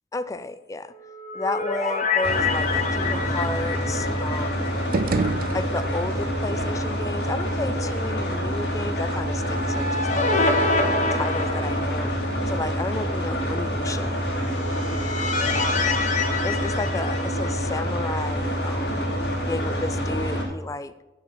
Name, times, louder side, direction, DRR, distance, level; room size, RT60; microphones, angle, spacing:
voice 1, 0.1-0.9 1.3-4.8 5.5-10.7 11.1-12.1 12.5-14.2 16.4-19.0 19.5-20.9, left 2 dB, 20° left, 13 dB, 0.4 m, -32 dB
sound 1, 1.0-5.3 5.6-5.7 9.2-12.4 14.4-17.8, left 3 dB, 45° left, 1.4 m, -27 dB
sound 2, 2.2-20.4, equal, 75° left, 4.2 m, -27 dB
sound 3, 4.7-6.2, right 3 dB, 55° right, 0.5 m, -27 dB
10.0 x 6.8 x 6.4 m, 1.1 s
head